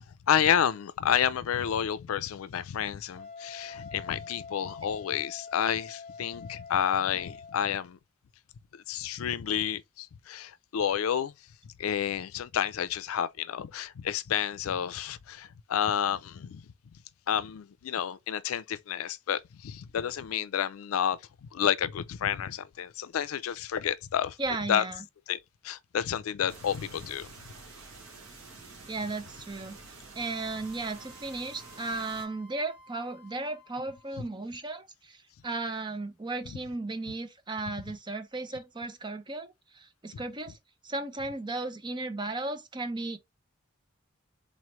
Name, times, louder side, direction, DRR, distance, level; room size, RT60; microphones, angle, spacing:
voice 1, 0.0-8.0 8.7-11.3 11.8-16.6 17.3-24.4 24.7-24.8 25.3-25.4 25.6-27.3, left 9 dB, 85° left, 0.4 m, -30 dB
Wind instrument woodwind instrument, 3.1-7.8, left 5 dB, 40° left, 0.6 m, -45 dB
voice 2, 24.4-25.0 28.9-29.8 30.1-35.2 35.4-40.6 40.8-43.2, right 2 dB, 20° right, 0.6 m, -35 dB
sound 1, 26.5-32.3, right 3 dB, 70° right, 1.8 m, -49 dB
Wind instrument woodwind instrument 2, 30.1-34.3, equal, 10° left, 1.0 m, -55 dB
4.1 x 3.0 x 3.0 m
head